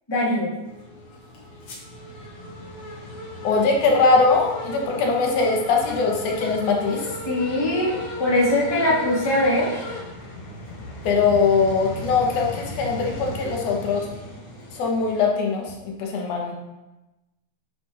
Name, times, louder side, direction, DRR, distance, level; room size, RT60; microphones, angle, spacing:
voice 1, 0.1-0.5 7.2-7.9 8.2-9.7, left 1 dB, 10° left, -7 dB, 1.4 m, -21 dB
sound 1, 0.6-15.2, left 1 dB, 55° left, 2.2 m, -36 dB
voice 2, 3.4-7.0 11.0-14.1 14.7-16.6, left 4 dB, 85° left, 0 dB, 2.6 m, -21 dB
9.8 x 3.9 x 4.2 m, 1.0 s
omnidirectional pair, 3.4 m